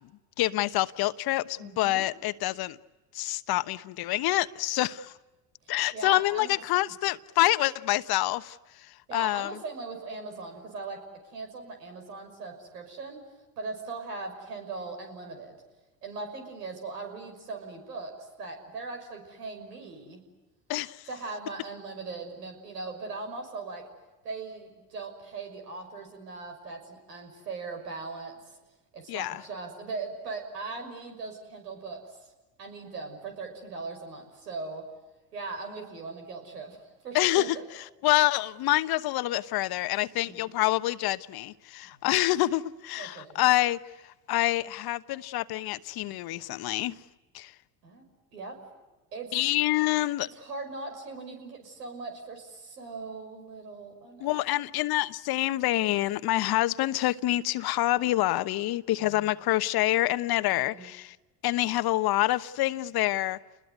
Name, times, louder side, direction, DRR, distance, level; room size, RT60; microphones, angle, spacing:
voice 1, 0.4-2.8 3.1-5.1 5.7-8.6 9.1-9.5 20.7-21.0 29.1-29.4 37.1-37.6 38.0-43.8 44.3-47.0 47.3-47.5 49.3-50.3 54.2-61.2 61.4-63.4, left 16 dB, 50° left, 1.1 m, -27 dB
voice 2, 1.6-2.1 5.9-6.5 9.1-13.2 13.6-15.6 16.0-20.2 21.1-23.8 24.2-28.4 28.9-32.3 32.6-34.8 35.3-37.6 40.2-40.4 41.9-42.0 43.0-43.4 47.8-48.0 48.3-48.6 49.1-49.5 50.2-54.4 59.0-59.3 60.5-60.9, right 3 dB, 85° right, 6.2 m, -39 dB
29.0 x 21.0 x 9.5 m
hypercardioid pair, 75°, 47 cm